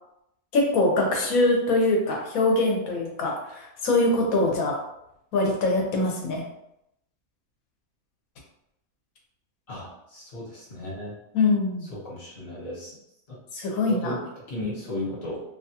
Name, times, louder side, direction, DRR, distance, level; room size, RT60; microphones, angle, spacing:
voice 1, 0.5-4.7 5.3-6.4 11.3-11.9 13.5-14.2, left 2 dB, 80° left, 0 dB, 1.2 m, -23 dB
voice 2, 9.7-11.1 11.8-13.0 13.8-14.2 14.5-15.4, left 1 dB, 50° left, -5 dB, 1.3 m, -35 dB
2.8 x 2.3 x 2.7 m, 0.81 s
omnidirectional pair, 1.5 m